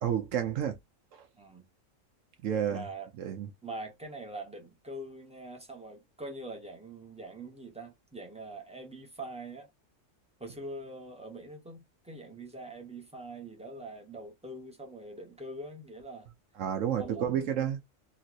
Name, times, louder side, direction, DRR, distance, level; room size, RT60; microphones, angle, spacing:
voice 1, 0.0-0.8 1.1-1.2 2.4-2.9 3.2-3.5 16.6-17.8, right 9 dB, 75° right, 1.0 m, -30 dB
voice 2, 1.4-1.7 2.7-3.1 3.6-9.7 10.4-16.3 17.0-17.5, right 2 dB, 5° right, 0.6 m, -43 dB
3.0 x 2.8 x 2.4 m
omnidirectional pair, 1.3 m